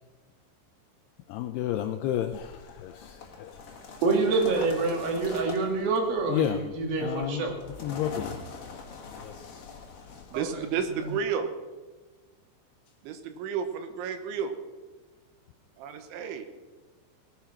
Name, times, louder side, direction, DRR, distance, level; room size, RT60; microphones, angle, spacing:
voice 1, 1.3-3.5 6.3-6.7 7.0-7.5 7.8-8.4 9.2-9.6, left 11 dB, 80° left, 7 dB, 2.3 m, -31 dB
sound 1, 2.3-11.2, left 5 dB, 50° left, 2.0 m, -44 dB
voice 2, 4.0-7.5, right 3 dB, 60° right, 2 dB, 3.5 m, -26 dB
voice 3, 10.3-11.5 13.0-14.5 15.8-16.5, right 7 dB, 85° right, 8 dB, 3.6 m, -31 dB
18.0 x 10.5 x 5.8 m, 1.3 s
omnidirectional pair, 5.4 m